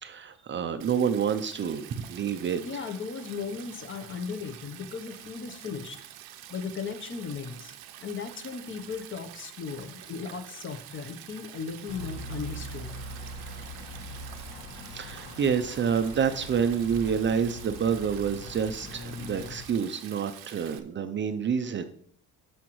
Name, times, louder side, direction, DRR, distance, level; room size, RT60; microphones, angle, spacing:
voice 1, 0.0-2.6 14.9-21.8, right 7 dB, 30° right, 9 dB, 0.5 m, -28 dB
Stream, 0.8-20.8, right 12 dB, 75° right, 0.8 m, -47 dB
voice 2, 2.6-6.0 6.5-7.7 8.0-12.9, left 5 dB, 35° left, 9 dB, 0.8 m, -36 dB
sound 1, 11.9-19.6, left 1 dB, 75° left, 2.2 m, -41 dB
13.0 x 5.0 x 3.1 m, 0.63 s
cardioid pair, 125°, 36 cm